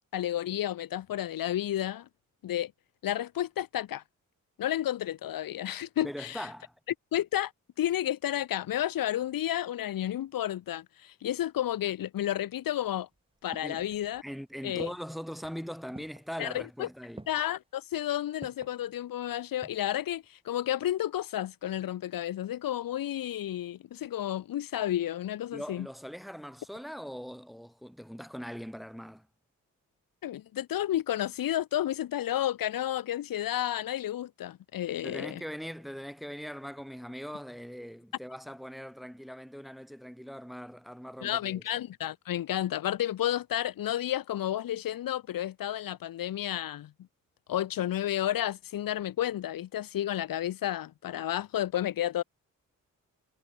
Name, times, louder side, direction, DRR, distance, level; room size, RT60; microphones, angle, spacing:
voice 1, 0.1-2.1 2.4-2.7 3.0-4.0 4.6-6.5 7.1-7.5 7.8-13.1 13.4-14.2 14.6-14.9 16.4-16.9 17.3-25.9 30.2-35.4 41.2-46.9 47.5-52.2, left 12 dB, 80° left, 1.1 m, -31 dB
voice 2, 6.0-6.8 13.6-13.9 14.2-17.2 25.5-29.3 35.0-41.6, equal, ahead, 2.4 m, -41 dB
sound 1, 13.0-14.3 14.8-15.3 15.9-16.4 17.2-17.6 18.4-18.8 19.4-20.0 20.2-20.3, right 2 dB, 15° right, 5.0 m, -49 dB
cardioid pair, 75°, 34 cm